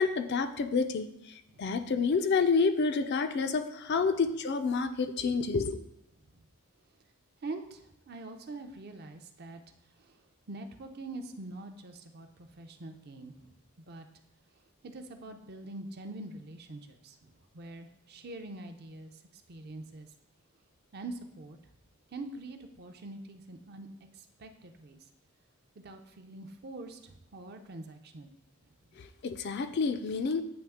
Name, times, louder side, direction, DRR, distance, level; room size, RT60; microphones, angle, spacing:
voice 1, 0.0-5.8 29.0-30.4, left 4 dB, 50° left, 9 dB, 0.4 m, -29 dB
voice 2, 7.4-9.6 10.0-10.2 10.5-13.5 13.9-14.1 14.8-20.1 20.9-21.6 22.1-23.9 24.1-25.0 25.8-28.3, right 2 dB, 45° right, 6 dB, 0.5 m, -44 dB
8.8 x 3.1 x 3.5 m, 0.79 s
head